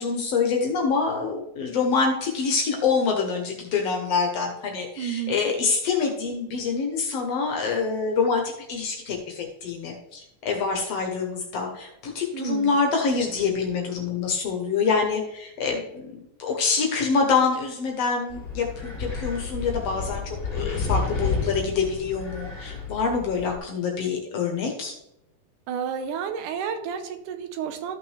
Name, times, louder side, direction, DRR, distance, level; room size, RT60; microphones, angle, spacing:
voice 1, 0.0-24.9, left 5 dB, 65° left, 2 dB, 1.8 m, -26 dB
voice 2, 5.0-5.4 12.3-12.8 25.7-28.0, right 8 dB, 80° right, 8 dB, 2.4 m, -31 dB
Wind, 18.3-23.6, left 4 dB, 25° left, 3.0 m, -31 dB
14.0 x 5.8 x 3.3 m, 0.86 s
omnidirectional pair, 3.7 m